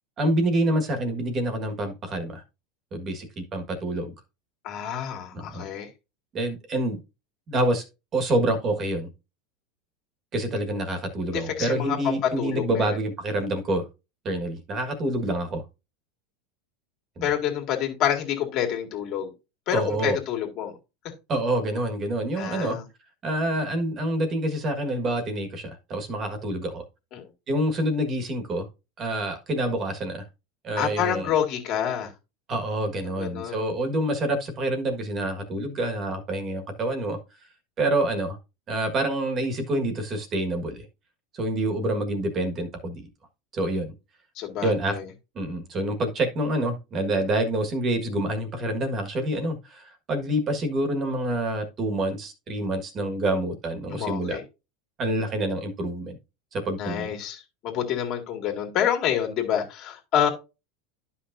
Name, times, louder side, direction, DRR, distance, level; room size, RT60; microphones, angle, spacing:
voice 1, 0.2-2.4 2.9-4.1 5.3-5.7 6.3-7.0 7.5-7.8 8.1-9.1 10.3-13.8 14.2-15.6 17.2-17.3 19.7-20.2 21.3-22.8 23.2-26.8 27.5-28.7 29.0-30.2 30.6-31.3 32.5-37.2 37.8-38.4 38.7-40.8 41.3-43.1 43.5-43.9 44.6-44.9 45.3-54.4 55.0-56.2 56.5-57.1, right 1 dB, 25° right, 1.6 m, -27 dB
voice 2, 4.6-5.9 11.3-13.0 17.2-19.3 19.7-20.7 22.4-22.8 27.1-27.2 30.8-32.1 33.1-33.6 44.4-45.0 53.9-54.4 56.8-60.3, left 9 dB, 40° left, 2.2 m, -27 dB
11.5 x 5.8 x 2.6 m
supercardioid pair, 165°, 0 cm